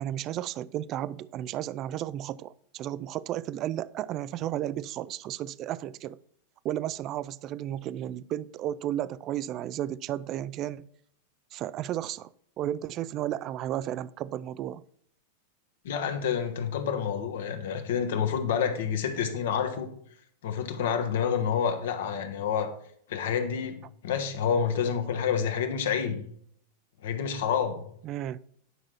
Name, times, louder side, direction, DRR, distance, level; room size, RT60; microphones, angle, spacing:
voice 1, 0.0-6.2 6.6-10.9 11.5-12.3 12.6-14.8 28.0-28.4, right 12 dB, 35° right, 0.3 m, -33 dB
voice 2, 15.8-19.9 20.4-22.7 23.1-26.2 27.0-27.8, left 7 dB, 55° left, 1.2 m, -28 dB
9.7 x 6.0 x 4.4 m
figure-of-eight pair, 90°, 0 cm